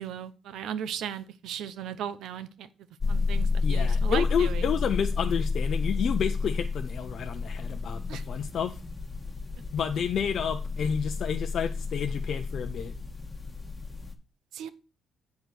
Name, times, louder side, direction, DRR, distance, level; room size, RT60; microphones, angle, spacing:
voice 1, 0.0-2.7 3.1-4.7 8.1-8.2 14.5-14.7, right 9 dB, 80° right, 0.8 m, -36 dB
sound 1, 3.0-14.1, left 4 dB, 20° left, 1.3 m, -30 dB
voice 2, 3.6-8.8 9.7-12.9, left 7 dB, 60° left, 0.6 m, -30 dB
8.0 x 4.7 x 6.7 m
cardioid pair, 90°, 0 cm